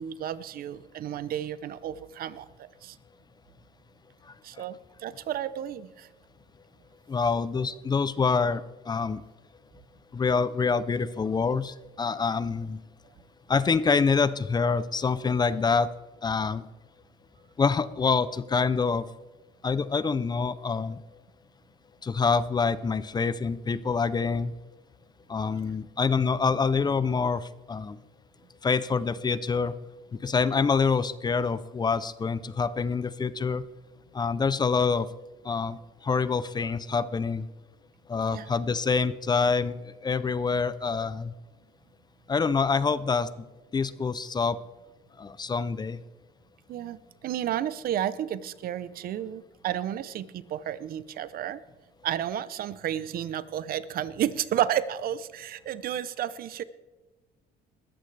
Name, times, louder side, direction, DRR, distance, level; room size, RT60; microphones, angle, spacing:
voice 1, 0.0-3.0 4.4-6.1 38.3-38.5 46.7-51.6 52.0-56.6, right 11 dB, 60° right, 16 dB, 0.7 m, -32 dB
voice 2, 4.2-4.6 7.1-9.2 10.1-12.8 13.5-15.9 16.2-16.7 17.6-19.1 19.6-21.0 22.0-24.5 25.3-28.0 28.6-29.8 30.1-33.7 34.1-35.1 35.4-37.5 38.1-41.3 42.3-43.5 43.7-44.6 45.2-46.0, left 5 dB, 25° left, 16 dB, 0.6 m, -26 dB
20.5 x 14.0 x 3.4 m, 1.2 s
cardioid pair, 110°, 17 cm